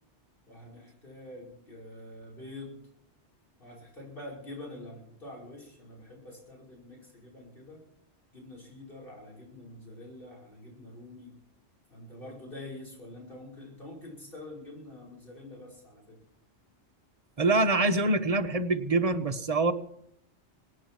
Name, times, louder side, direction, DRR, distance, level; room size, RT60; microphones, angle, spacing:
voice 1, 0.5-2.8 3.6-7.8 8.3-11.4 11.9-16.2, left 1 dB, 50° left, -2 dB, 5.7 m, -46 dB
voice 2, 17.4-19.7, right 2 dB, 30° right, 6 dB, 1.1 m, -25 dB
24.0 x 9.6 x 6.0 m, 0.71 s
omnidirectional pair, 1.2 m